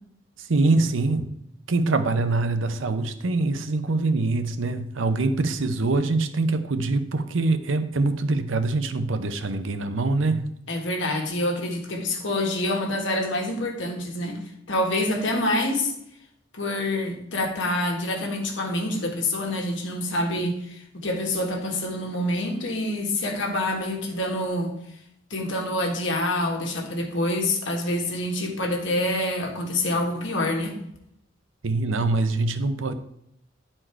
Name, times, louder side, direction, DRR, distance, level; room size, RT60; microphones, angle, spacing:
voice 1, 0.5-1.3 1.7-10.5 31.6-32.9, right 3 dB, 75° right, 10 dB, 0.7 m, -24 dB
voice 2, 10.7-14.4 14.7-15.9 16.5-24.8 25.3-30.7, left 1 dB, 65° left, 2 dB, 1.5 m, -26 dB
10.0 x 4.4 x 4.5 m, 0.75 s
head